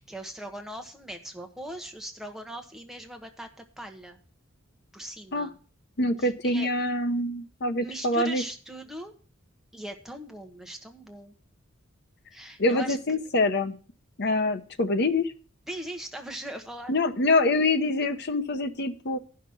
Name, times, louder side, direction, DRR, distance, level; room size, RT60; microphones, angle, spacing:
voice 1, 0.0-4.2 4.9-5.6 6.2-6.7 7.8-9.1 9.7-11.3 12.3-13.0 15.7-16.9, right 1 dB, ahead, 4 dB, 1.2 m, -40 dB
voice 2, 6.0-8.4 12.6-13.8 14.2-15.3 16.9-19.2, left 2 dB, 55° left, 9 dB, 0.9 m, -25 dB
11.0 x 5.9 x 6.3 m, 0.40 s
head